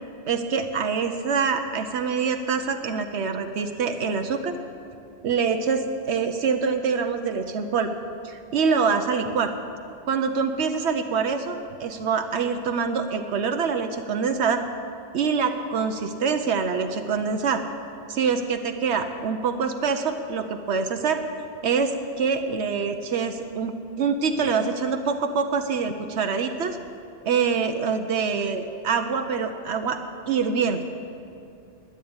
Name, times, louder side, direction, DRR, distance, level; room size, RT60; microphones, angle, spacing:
voice 1, 0.3-4.6 5.2-7.9 8.2-9.5 10.1-14.6 15.1-17.6 18.1-21.2 21.6-26.8 27.3-30.0 30.3-30.8, right 5 dB, 75° right, 7 dB, 1.0 m, -25 dB
12.0 x 10.5 x 8.7 m, 2.6 s
omnidirectional pair, 1.1 m